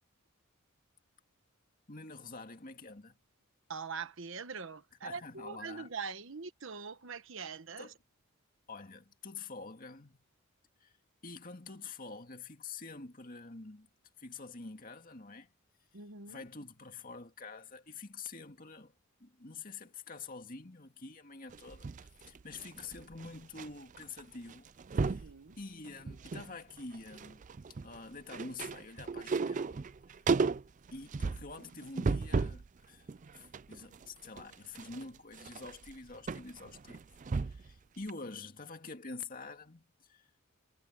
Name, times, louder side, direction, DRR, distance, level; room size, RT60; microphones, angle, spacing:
voice 1, 1.9-3.2 5.0-5.9 7.8-7.9 8.7-10.2 10.8-10.9 11.2-13.9 14.2-15.5 16.3-18.9 19.2-25.3 25.6-27.4 27.8-29.8 30.9-33.1 33.3-37.0 37.4-40.3, left 3 dB, 40° left, 2.2 m, -47 dB
voice 2, 3.7-7.9 15.9-16.5 25.1-25.5, right 5 dB, 60° right, 1.2 m, -43 dB
sound 1, 21.5-23.7 23.9-24.2 24.5-25.3 25.8-26.5 26.8-32.7 33.1-37.7 38.1-38.2, right 4 dB, 35° right, 0.4 m, -35 dB
head